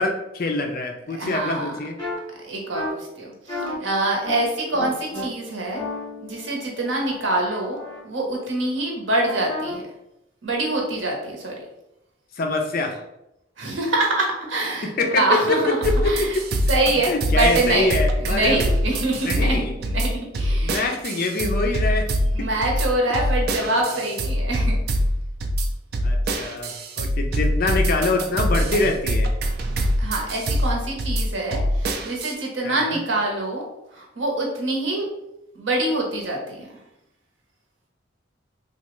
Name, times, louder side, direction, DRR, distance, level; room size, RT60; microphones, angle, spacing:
voice 1, 0.0-2.0 12.3-13.0 14.8-16.4 17.1-18.6 19.2-19.7 20.6-22.1 22.4-22.5 23.8-24.0 26.0-29.3 32.6-33.0, left 3 dB, 50° left, 3 dB, 0.5 m, -25 dB
voice 2, 1.1-1.7 2.4-5.8 6.2-9.8 10.4-11.6 13.6-15.8 16.0-16.4 16.7-20.9 22.3-24.8 30.0-33.6 33.9-35.1 35.5-36.7, right 2 dB, 85° right, 0 dB, 0.9 m, -25 dB
sound 1, 2.0-2.1 2.7-2.9 3.5-3.7 4.2-4.4 4.7-5.2 5.7-8.0 9.2-9.7, left 2 dB, 20° left, 1.1 m, -33 dB
sound 2, 15.8-32.3, equal, 55° right, 0.4 m, -24 dB
3.2 x 2.3 x 3.0 m, 0.85 s
head